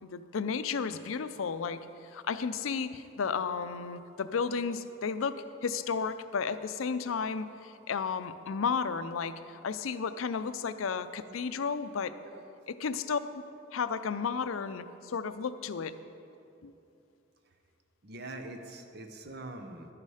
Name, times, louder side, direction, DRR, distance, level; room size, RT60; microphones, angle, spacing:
voice 1, 0.0-5.4 5.6-12.1 12.7-13.2 13.7-15.9 16.6-16.7, left 5 dB, 85° left, 12 dB, 0.5 m, -33 dB
voice 2, 18.0-19.9, right 2 dB, 55° right, 6 dB, 0.9 m, -43 dB
11.5 x 9.8 x 4.9 m, 2.7 s
head